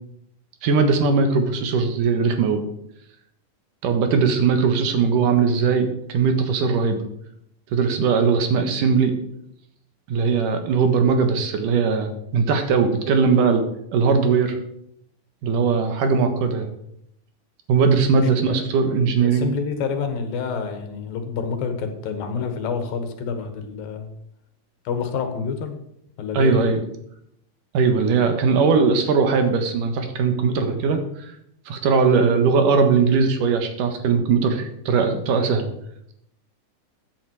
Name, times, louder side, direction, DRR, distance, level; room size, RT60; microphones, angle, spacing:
voice 1, 0.6-2.6 3.8-7.0 7.7-9.1 10.1-13.6 13.9-14.6 15.4-16.7 17.7-19.5 26.3-26.8 27.7-31.0 31.7-35.7, right 5 dB, 70° right, 7 dB, 2.9 m, -19 dB
voice 2, 18.1-18.6 19.2-24.1 24.8-25.7 26.2-26.7, left 5 dB, 85° left, 7 dB, 3.3 m, -28 dB
14.5 x 9.2 x 4.8 m, 0.74 s
omnidirectional pair, 4.0 m